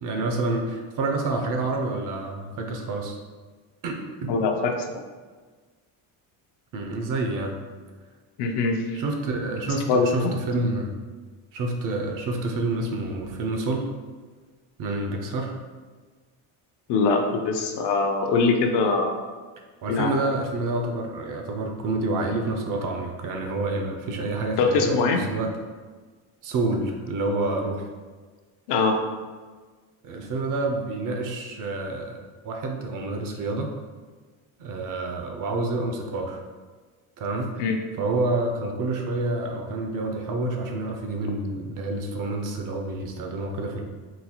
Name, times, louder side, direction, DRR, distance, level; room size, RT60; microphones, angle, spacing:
voice 1, 0.0-3.2 3.8-4.3 6.7-7.5 8.9-10.9 11.5-13.9 14.8-15.6 19.8-25.5 26.4-27.9 30.0-33.7 34.6-36.4 37.2-37.7 38.0-43.8, right 2 dB, 50° right, 3 dB, 0.5 m, -28 dB
voice 2, 4.3-5.0 8.4-9.0 9.9-10.3 16.9-19.2 19.9-20.1 24.6-25.2 28.7-29.0 37.6-37.8, left 4 dB, 65° left, 4 dB, 0.6 m, -23 dB
3.9 x 2.3 x 2.8 m, 1.4 s
cardioid pair, 130°, 43 cm